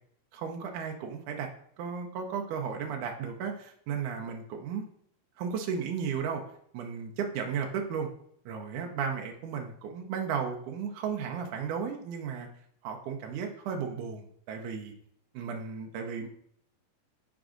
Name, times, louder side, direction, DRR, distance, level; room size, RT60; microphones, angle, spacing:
voice 1, 0.3-1.5 1.8-4.8 5.4-6.4 6.7-8.1 8.5-12.5 12.8-14.9 15.3-16.3, right 6 dB, 80° right, 2 dB, 1.8 m, -34 dB
6.1 x 4.5 x 3.7 m, 0.67 s
omnidirectional pair, 4.3 m